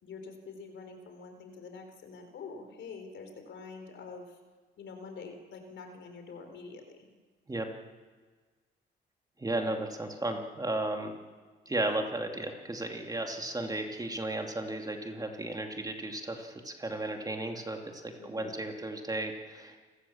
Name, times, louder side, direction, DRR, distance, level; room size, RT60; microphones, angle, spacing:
voice 1, 0.0-4.4 4.8-7.1 9.6-9.7 18.2-18.6, left 4 dB, 65° left, 6 dB, 4.0 m, -46 dB
voice 2, 9.4-11.1 11.7-19.8, right 2 dB, 20° right, 3 dB, 2.6 m, -34 dB
28.5 x 14.5 x 7.2 m, 1.4 s
cardioid pair, 90°, 20 cm